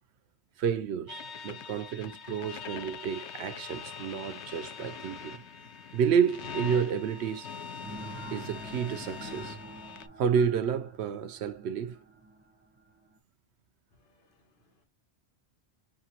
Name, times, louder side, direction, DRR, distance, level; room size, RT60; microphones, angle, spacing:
voice 1, 0.6-5.4 5.9-7.5 8.3-9.6 10.2-12.0, right 7 dB, 80° right, 0.8 m, -30 dB
sound 1, 1.1-10.1, left 6 dB, 85° left, 0.9 m, -43 dB
sound 2, 7.8-13.2, right 2 dB, 10° right, 0.9 m, -47 dB
voice 2, 13.9-14.8, left 3 dB, 55° left, 1.3 m, -69 dB
5.9 x 2.7 x 2.9 m
omnidirectional pair, 1.1 m